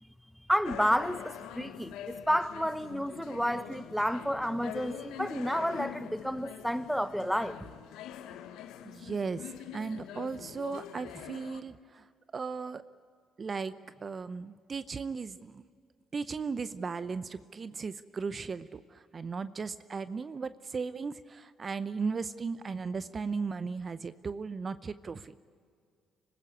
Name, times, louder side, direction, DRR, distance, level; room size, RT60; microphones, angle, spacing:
voice 1, 0.5-7.6, equal, ahead, 1.1 m, -30 dB
sound 1, 0.6-11.6, left 10 dB, 70° left, 1.1 m, -44 dB
voice 2, 8.8-12.0 12.3-12.8 13.4-13.7 14.0-15.6 16.1-25.3, right 5 dB, 40° right, 0.7 m, -36 dB
26.0 x 15.5 x 9.6 m
hypercardioid pair, 45°, 0 cm